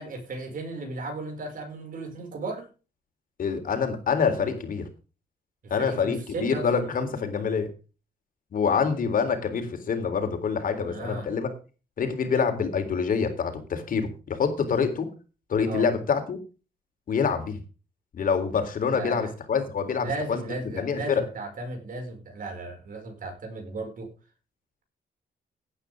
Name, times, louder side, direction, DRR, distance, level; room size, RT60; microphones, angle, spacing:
voice 1, 0.0-2.7 5.6-6.8 10.9-11.4 15.7-15.9 18.9-19.3 20.0-24.1, right 2 dB, 50° right, 3 dB, 5.7 m, -35 dB
voice 2, 3.4-4.9 5.7-7.7 8.5-11.5 12.0-15.1 15.5-16.4 17.1-17.6 18.1-21.2, left 6 dB, 55° left, 6 dB, 3.6 m, -26 dB
17.0 x 9.9 x 3.6 m, 0.33 s
cardioid pair, 145°, 17 cm